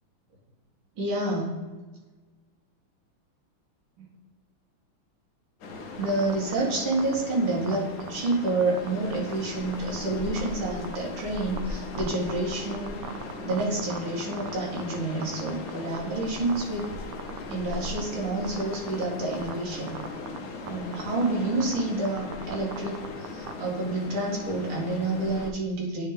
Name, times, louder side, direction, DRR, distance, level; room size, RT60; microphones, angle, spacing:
voice 1, 1.0-1.5 4.0-4.1 6.0-12.9 13.4-16.9 17.5-20.0 20.6-26.1, right 2 dB, 70° right, -2 dB, 2.2 m, -29 dB
sound 1, 5.6-25.5, left 3 dB, 80° left, 0.8 m, -38 dB
sound 2, 6.0-6.5 6.9-7.1 7.7-8.9 9.1-9.3 9.7-10.0 10.4-10.5 10.8-11.6 11.9-14.9 15.2-16.0 16.2-16.8 17.1-18.0 18.4-19.0 19.3-19.5 19.9-20.4 20.7-20.8 20.9-21.3 21.6-23.5, right 11 dB, 85° right, 1.5 m, -37 dB
9.1 x 3.5 x 3.5 m, 1.3 s
omnidirectional pair, 2.4 m